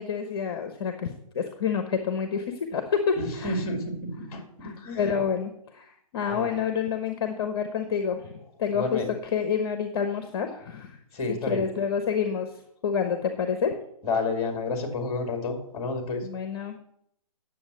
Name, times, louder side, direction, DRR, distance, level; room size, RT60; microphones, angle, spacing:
voice 1, 0.0-3.6 4.2-8.3 8.6-11.0 11.3-12.5 12.8-13.7 16.2-16.7, left 7 dB, 40° left, 7 dB, 1.0 m, -28 dB
voice 2, 3.2-5.1 6.3-6.5 8.7-9.1 11.2-11.6 14.0-16.2, left 3 dB, 20° left, 4 dB, 2.4 m, -30 dB
9.8 x 7.4 x 6.3 m, 0.72 s
hypercardioid pair, 165°, 19 cm